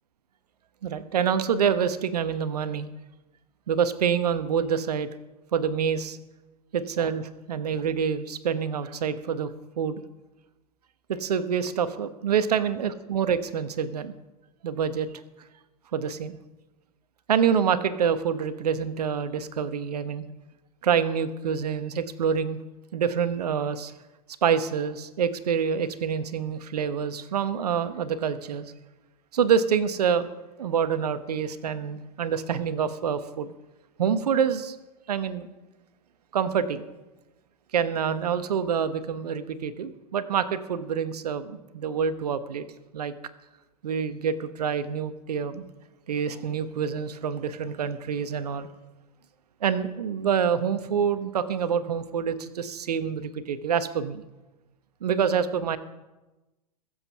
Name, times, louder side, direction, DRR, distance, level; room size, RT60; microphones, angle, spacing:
voice 1, 0.8-2.9 3.7-5.1 5.5-6.2 6.7-10.0 11.1-14.1 14.6-15.1 15.9-16.4 17.3-20.3 20.8-22.6 22.9-23.9 24.4-28.7 29.3-30.3 30.6-33.5 34.0-34.8 35.1-35.5 36.3-36.8 37.7-42.6 42.9-43.1 43.8-45.7 46.1-48.7 49.6-54.2 55.0-55.8, right 7 dB, 70° right, 12 dB, 1.2 m, -26 dB
21.5 x 7.7 x 5.6 m, 1.1 s
figure-of-eight pair, 100°, 21 cm